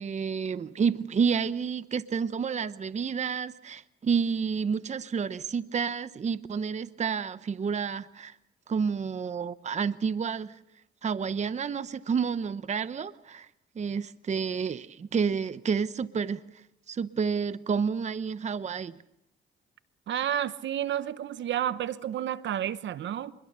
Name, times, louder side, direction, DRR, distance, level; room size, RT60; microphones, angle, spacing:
voice 1, 0.0-8.4 8.7-10.6 11.0-13.5 13.7-18.9, right 6 dB, 35° right, 0.8 m, -30 dB
voice 2, 20.1-23.3, right 10 dB, 65° right, 1.0 m, -30 dB
25.5 x 22.0 x 6.7 m
cardioid pair, 90°, 20 cm